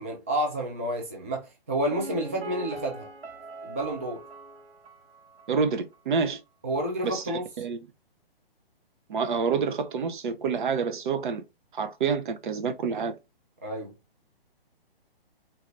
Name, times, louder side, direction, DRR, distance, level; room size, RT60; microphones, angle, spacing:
voice 1, 0.0-3.1 3.6-4.2 6.6-7.5 13.6-13.9, right 1 dB, 15° right, 0.3 m, -30 dB
Piano, 1.9-5.7 5.9-6.0, right 2 dB, 90° right, 1.2 m, -42 dB
voice 2, 5.5-6.4 7.0-7.2 7.6-7.9 9.1-11.4 11.7-13.2, right 5 dB, 55° right, 0.9 m, -28 dB
3.9 x 2.7 x 3.2 m
hypercardioid pair, 145°, 30 cm